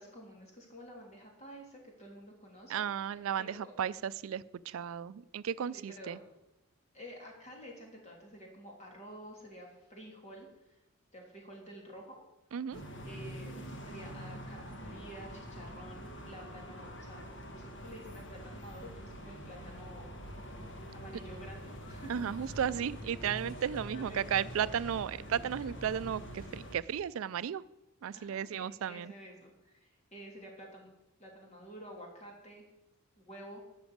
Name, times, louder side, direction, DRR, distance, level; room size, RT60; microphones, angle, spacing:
voice 1, 0.0-3.7 5.7-6.2 6.9-10.8 11.1-12.2 13.0-20.1 20.9-22.1 23.9-24.4 28.1-30.9 31.2-32.6 33.2-33.6, equal, 30° left, -1 dB, 3.1 m, -50 dB
voice 2, 2.7-6.2 12.5-12.8 22.1-27.6 28.0-29.1, right 8 dB, 65° right, 17 dB, 0.3 m, -34 dB
sound 1, 12.7-26.8, equal, 55° left, 1.5 m, -45 dB
12.5 x 6.1 x 8.6 m, 0.92 s
head